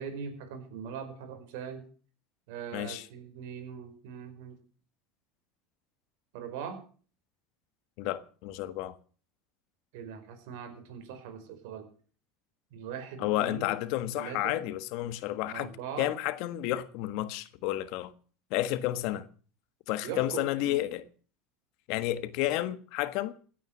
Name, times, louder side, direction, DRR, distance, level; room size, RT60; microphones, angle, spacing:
voice 1, 0.0-1.8 2.5-4.6 6.3-6.8 9.9-11.9 12.7-13.7 14.2-14.6 15.5-16.1 20.0-20.8, right 7 dB, 75° right, 5.1 m, -41 dB
voice 2, 2.7-3.1 8.0-8.9 13.2-15.7 16.0-18.1 18.5-19.3 19.9-21.0 21.9-23.3, left 15 dB, 65° left, 1.5 m, -31 dB
16.5 x 9.3 x 7.3 m
supercardioid pair, 110°, 0 cm